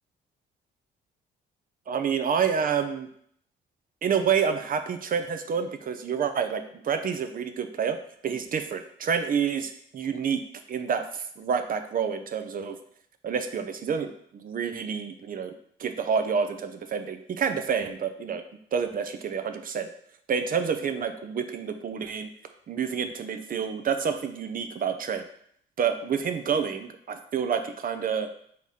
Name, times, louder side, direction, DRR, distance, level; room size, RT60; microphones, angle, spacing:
voice 1, 1.9-3.1 4.0-8.0 8.2-10.4 10.7-12.8 13.2-15.5 15.8-18.4 18.7-19.9 20.3-22.3 22.7-25.2 25.8-28.3, right 7 dB, 45° right, 8 dB, 0.5 m, -28 dB
4.0 x 2.8 x 4.7 m, 0.66 s
cardioid pair, 90°, 20 cm